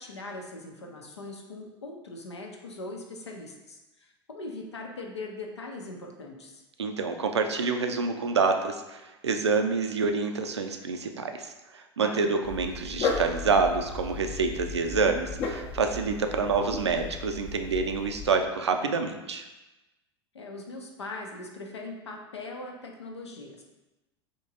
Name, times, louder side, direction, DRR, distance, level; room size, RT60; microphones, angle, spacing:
voice 1, 0.0-6.6 12.0-12.3 20.3-23.6, left 2 dB, 80° left, 1 dB, 0.7 m, -40 dB
voice 2, 6.8-19.4, right 4 dB, 80° right, 5 dB, 0.4 m, -27 dB
Dog, 12.4-18.4, left 4 dB, 40° left, 0.6 m, -35 dB
3.6 x 3.0 x 4.0 m, 1.0 s
figure-of-eight pair, 80°, 14 cm